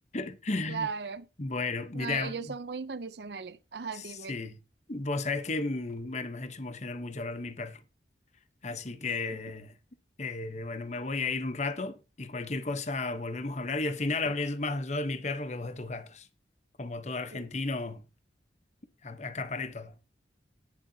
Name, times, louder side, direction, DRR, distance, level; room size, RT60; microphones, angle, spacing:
voice 1, 0.1-0.9 1.4-2.5 3.9-4.6 4.9-7.8 8.6-9.7 10.2-16.3 16.8-18.0 19.0-20.0, left 3 dB, 40° left, 1.0 m, -34 dB
voice 2, 0.7-1.3 1.9-4.4 9.3-9.4 17.3-17.5, right 5 dB, 70° right, 0.6 m, -37 dB
18.0 x 6.8 x 2.8 m
head